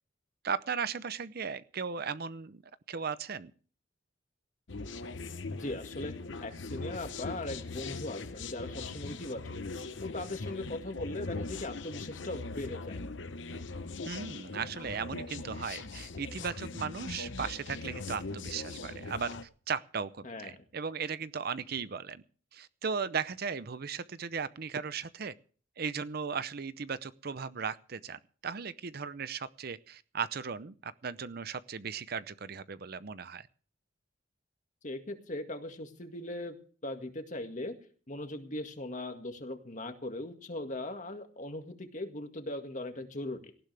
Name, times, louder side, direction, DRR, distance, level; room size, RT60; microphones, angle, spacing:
voice 1, 0.4-2.6 2.9-3.5 14.1-19.3 19.7-22.2 22.5-25.3 25.8-33.5, right 6 dB, 50° right, 15 dB, 0.7 m, -37 dB
sound 1, 4.7-19.4, left 3 dB, 70° left, 0.9 m, -40 dB
voice 2, 5.5-6.1 6.4-9.5 10.0-13.0 20.2-20.6 34.8-36.6 36.8-37.7 38.1-43.4, left 1 dB, 40° left, 5 dB, 2.0 m, -39 dB
18.5 x 16.0 x 3.4 m, 0.42 s
head